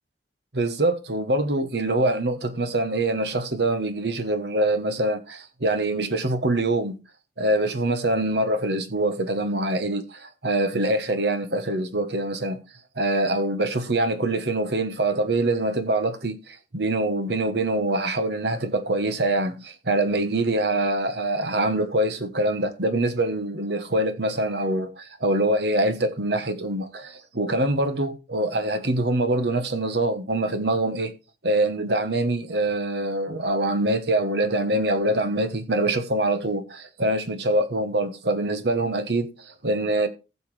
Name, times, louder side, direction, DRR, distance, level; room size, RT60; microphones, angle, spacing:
voice 1, 0.5-7.0 7.4-12.6 13.0-31.1 31.4-40.1, right 1 dB, 65° right, 1.2 m, -24 dB
15.0 x 6.8 x 3.3 m
head